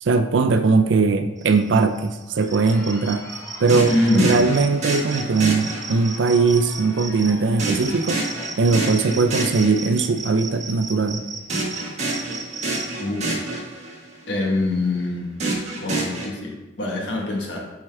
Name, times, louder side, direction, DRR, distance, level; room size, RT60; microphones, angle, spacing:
voice 1, 0.0-3.2 3.6-8.2 8.6-11.2, right 4 dB, 90° right, 9 dB, 0.5 m, -20 dB
sound 1, 1.4-12.9, right 4 dB, 20° right, 0.6 m, -35 dB
Crowd, 2.2-8.6, left 1 dB, 20° left, 1.3 m, -43 dB
sound 2, 3.7-6.3 7.6-10.2 11.5-14.2 15.4-16.3, right 2 dB, 40° right, 1.4 m, -28 dB
voice 2, 3.9-4.4 13.0-13.4 14.3-15.4 15.8-17.7, left 2 dB, 75° left, 0 dB, 1.5 m, -24 dB
8.7 x 4.6 x 3.4 m, 1.1 s
head